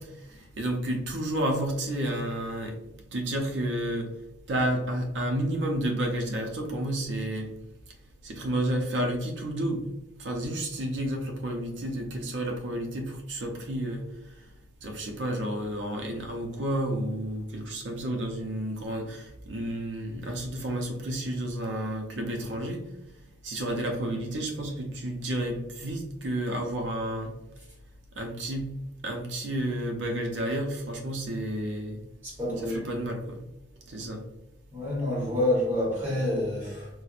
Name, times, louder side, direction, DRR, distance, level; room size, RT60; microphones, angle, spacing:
voice 1, 0.2-2.8 3.1-4.1 4.5-7.5 8.2-9.9 10.2-14.0 14.8-22.8 23.4-27.3 28.1-28.7 29.0-32.0 32.6-33.4 33.9-34.2, right 1 dB, 65° right, 2 dB, 0.5 m, -31 dB
voice 2, 32.2-32.9 34.7-36.9, left 1 dB, 10° right, -5 dB, 1.0 m, -28 dB
4.2 x 2.1 x 2.4 m, 0.91 s
head